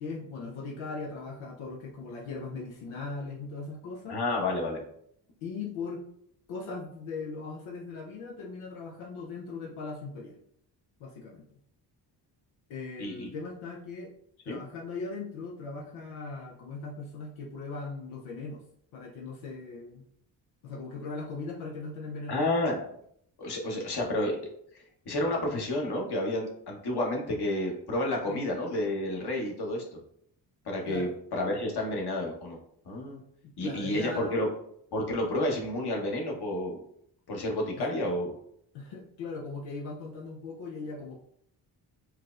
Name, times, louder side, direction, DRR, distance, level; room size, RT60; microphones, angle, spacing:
voice 1, 0.0-4.2 5.4-6.1 6.5-10.4 11.0-11.4 12.7-14.1 14.4-18.6 18.9-20.0 20.6-22.5 28.3-28.4 30.9-31.1 33.4-34.4 38.7-41.2, left 4 dB, 90° left, -2 dB, 0.6 m, -39 dB
voice 2, 4.1-4.8 13.0-13.3 14.5-14.6 22.3-22.8 23.4-24.4 24.7-29.8 30.6-32.6 32.8-33.2 33.6-34.5 34.9-36.8 37.3-38.3, left 1 dB, 55° left, 0 dB, 1.2 m, -30 dB
4.6 x 2.1 x 2.4 m, 0.69 s
supercardioid pair, 50°, 48 cm